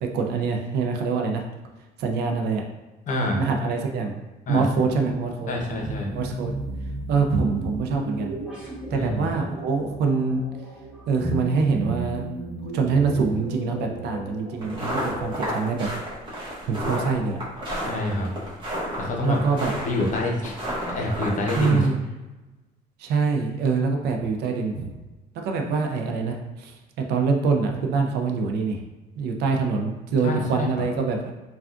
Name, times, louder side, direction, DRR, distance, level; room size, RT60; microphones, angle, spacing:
voice 1, 0.0-1.4 2.0-2.6 3.4-4.2 4.5-5.5 6.1-6.5 7.1-8.3 8.9-10.4 11.1-12.2 12.7-15.9 16.7-17.4 19.2-19.7 21.5-22.0 23.0-24.9 25.4-28.8 29.2-31.2, right 4 dB, 75° right, 3 dB, 0.4 m, -24 dB
voice 2, 3.1-3.4 4.5-4.6 5.5-6.1 8.9-9.3 17.8-18.3 19.0-19.4 19.8-20.5 20.9-21.8 30.2-30.7, left 2 dB, 50° left, 0 dB, 0.7 m, -27 dB
sound 1, 4.5-15.8, right 1 dB, 5° right, 1.1 m, -35 dB
sound 2, 14.6-21.8, equal, 30° right, 1.2 m, -31 dB
3.4 x 2.3 x 2.4 m, 1.1 s
cardioid pair, 110°, 17 cm